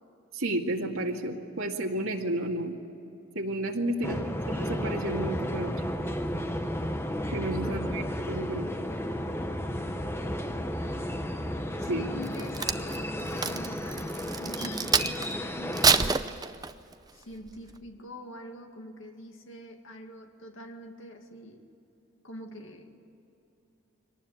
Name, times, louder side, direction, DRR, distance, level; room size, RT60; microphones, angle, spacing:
voice 1, 0.3-2.8 3.4-4.2 4.5-5.7 7.3-8.0 8.3-8.7 11.9-12.1, right 1 dB, 80° right, 0 dB, 2.1 m, -31 dB
voice 2, 4.0-4.3 7.6-8.1 11.8-16.4 17.1-21.6 22.2-23.0, equal, 65° left, 4 dB, 2.2 m, -45 dB
sound 1, 4.0-16.1, equal, 10° left, 0.9 m, -33 dB
Crack, 12.2-15.3 15.7-16.9 17.5-17.7, right 5 dB, 20° right, 0.5 m, -27 dB
23.5 x 19.0 x 9.1 m, 2.7 s
head